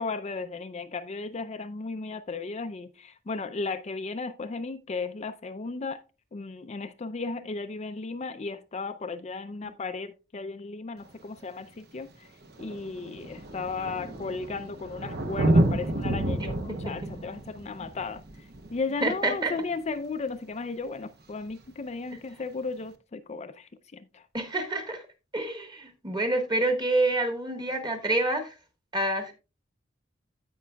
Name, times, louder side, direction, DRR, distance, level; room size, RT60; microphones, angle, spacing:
voice 1, 0.0-6.0 6.3-12.3 12.6-24.2, left 4 dB, 35° left, 0.4 m, -35 dB
Thunder, 11.1-11.2 12.1-12.2 12.4-19.7 21.4-21.5, right 1 dB, 60° right, 0.9 m, -29 dB
voice 2, 19.0-19.5 24.3-25.0 25.3-28.5 28.9-29.3, right 2 dB, 25° right, 1.5 m, -27 dB
16.0 x 5.4 x 2.3 m
head